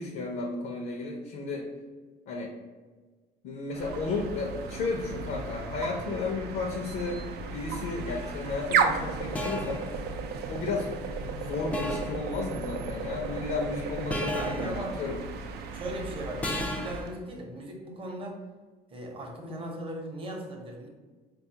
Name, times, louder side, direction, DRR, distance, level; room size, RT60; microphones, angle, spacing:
voice 1, 0.0-1.7 2.3-2.5 3.4-9.8 10.5-10.9 11.3-15.2, left 3 dB, 65° left, 0 dB, 0.5 m, -33 dB
sound 1, 3.7-17.1, right 5 dB, 70° right, 0.4 m, -34 dB
sound 2, 8.1-8.3 9.3-9.8 11.7-12.2 14.1-14.7 16.4-17.0, left 1 dB, 10° left, 0.3 m, -33 dB
voice 2, 14.4-15.0 15.7-18.4 18.9-20.9, right 1 dB, 30° right, 0 dB, 0.8 m, -38 dB
4.0 x 2.3 x 2.7 m, 1.4 s
cardioid pair, 110°, 17 cm